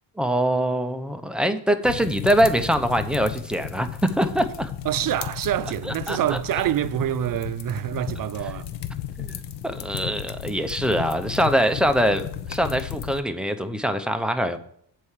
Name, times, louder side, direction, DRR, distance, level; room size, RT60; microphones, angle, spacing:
voice 1, 0.2-4.7 5.9-6.4 9.2-14.6, equal, ahead, 0.6 m, -23 dB
sound 1, 1.8-13.2, left 10 dB, 70° left, 0.9 m, -34 dB
voice 2, 4.8-8.7, right 12 dB, 50° right, 0.5 m, -26 dB
8.2 x 4.6 x 7.2 m
cardioid pair, 105°, 43 cm